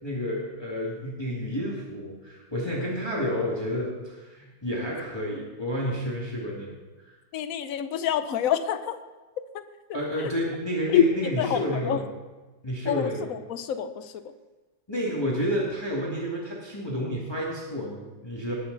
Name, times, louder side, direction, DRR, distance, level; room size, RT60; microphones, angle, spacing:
voice 1, 0.0-6.7 7.1-7.2 9.9-12.0 12.6-13.3 14.9-18.5, equal, 15° left, -4 dB, 2.2 m, -30 dB
voice 2, 7.3-9.0 9.9-10.0 10.9-11.0 11.4-12.0 12.8-14.2, left 10 dB, 60° left, 10 dB, 1.0 m, -26 dB
20.0 x 8.9 x 4.1 m, 1.2 s
omnidirectional pair, 2.1 m